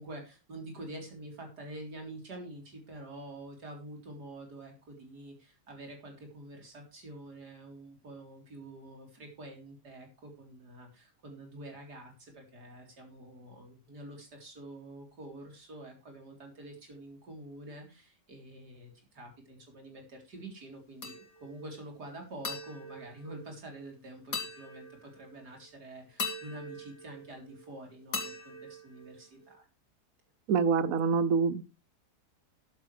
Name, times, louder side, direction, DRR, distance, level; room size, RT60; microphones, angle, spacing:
voice 1, 0.0-29.7, right 1 dB, 80° right, 2 dB, 4.3 m, -47 dB
sound 1, 21.0-21.6 22.4-23.9 24.3-25.3 26.2-27.7 28.1-29.5, left 3 dB, 85° left, 2.8 m, -41 dB
voice 2, 30.5-31.6, right 5 dB, 65° right, 16 dB, 1.1 m, -26 dB
13.5 x 11.0 x 3.3 m, 0.29 s
omnidirectional pair, 1.7 m